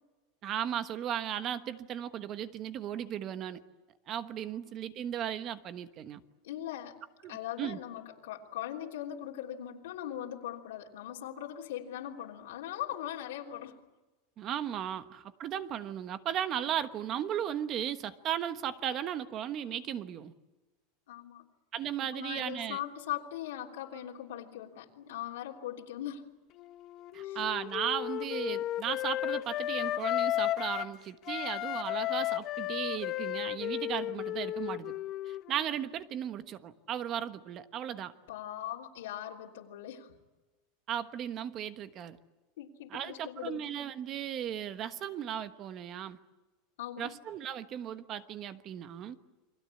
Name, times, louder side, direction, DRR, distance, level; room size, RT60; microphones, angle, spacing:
voice 1, 0.4-3.6 4.1-6.2 7.2-7.3 7.6-7.8 14.4-20.3 21.7-22.8 27.1-34.9 35.3-38.1 40.9-42.2 42.9-46.2 47.0-49.2, right 10 dB, 35° right, 11 dB, 1.2 m, -36 dB
voice 2, 6.4-7.0 7.3-13.8 21.1-21.4 22.0-26.3 27.2-27.4 38.3-40.1 42.6-43.6 46.8-47.1, left 11 dB, 90° left, -2 dB, 3.3 m, -40 dB
Wind instrument woodwind instrument, 26.6-31.0 31.3-35.8, left 14 dB, 40° left, 1.1 m, -34 dB
29.5 x 23.5 x 8.5 m, 1.1 s
supercardioid pair, 155°, 0 cm